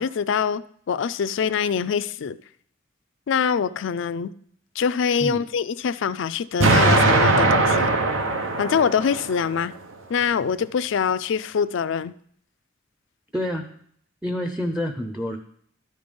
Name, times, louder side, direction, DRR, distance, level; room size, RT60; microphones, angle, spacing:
voice 1, 0.0-2.4 3.3-4.3 4.8-7.9 8.6-9.7 10.1-12.1, left 6 dB, 65° left, 0.4 m, -24 dB
Explosion, 6.6-9.6, right 2 dB, 80° right, 0.9 m, -20 dB
voice 2, 13.3-13.7 14.2-15.4, left 1 dB, 5° right, 0.5 m, -27 dB
12.5 x 5.3 x 5.2 m
head